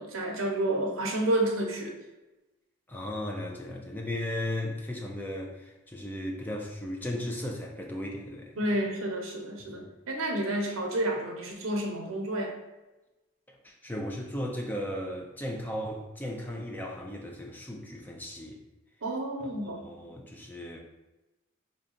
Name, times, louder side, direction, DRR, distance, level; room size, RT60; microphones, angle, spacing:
voice 1, 0.0-1.9 8.6-12.5 19.0-19.8, right 1 dB, 90° right, 2 dB, 0.7 m, -30 dB
voice 2, 2.9-8.6 9.6-9.7 13.6-18.6 19.8-20.8, left 1 dB, 10° left, 0 dB, 0.4 m, -36 dB
3.8 x 2.2 x 3.7 m, 1.0 s
head